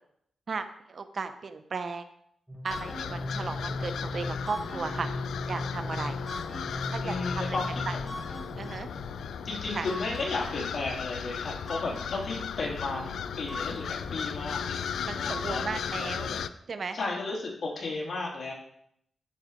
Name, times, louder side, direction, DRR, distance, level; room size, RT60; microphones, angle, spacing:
voice 1, 0.5-2.1 2.6-5.1 5.5-6.2 6.9-7.6 7.9-8.0 8.6-8.9 9.7-9.9 15.0-16.3 16.7-17.0, right 4 dB, 50° right, 9 dB, 0.8 m, -35 dB
sound 1, 2.5-16.3, left 1 dB, ahead, 3.3 m, -38 dB
sound 2, 2.7-16.5, left 7 dB, 85° left, 0.4 m, -36 dB
voice 2, 7.0-8.2 9.4-15.6 15.9-16.4 16.9-18.5, left 3 dB, 55° left, -2 dB, 3.3 m, -34 dB
13.0 x 5.0 x 5.0 m, 0.72 s
cardioid pair, 100°, 0 cm